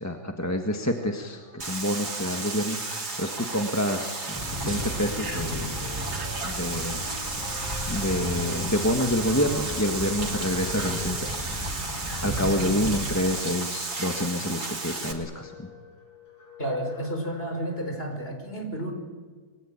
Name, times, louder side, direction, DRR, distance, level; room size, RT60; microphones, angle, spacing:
voice 1, 0.0-5.8 6.4-7.0 7.9-11.6 12.2-15.7, left 1 dB, 10° left, 3 dB, 1.5 m, -28 dB
sound 1, 0.7-18.2, left 2 dB, 75° left, 7.4 m, -47 dB
sound 2, 1.6-15.1, right 3 dB, 80° right, 3.9 m, -33 dB
sound 3, 4.3-13.2, equal, 10° right, 5.3 m, -35 dB
voice 2, 16.6-18.9, right 1 dB, 35° left, 4 dB, 5.3 m, -31 dB
28.0 x 23.0 x 8.8 m, 1.5 s
omnidirectional pair, 1.7 m